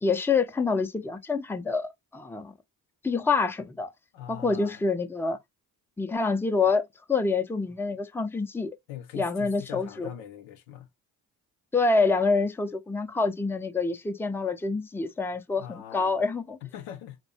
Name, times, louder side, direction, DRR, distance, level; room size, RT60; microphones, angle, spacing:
voice 1, 0.0-2.5 3.0-3.9 4.3-5.4 6.0-8.8 9.1-10.1 11.7-16.6, left 4 dB, 5° left, 0.5 m, -27 dB
voice 2, 4.1-4.8 8.9-10.9 15.6-16.2 16.6-17.2, left 10 dB, 85° left, 0.6 m, -42 dB
4.0 x 2.2 x 2.8 m
hypercardioid pair, 45°, 47 cm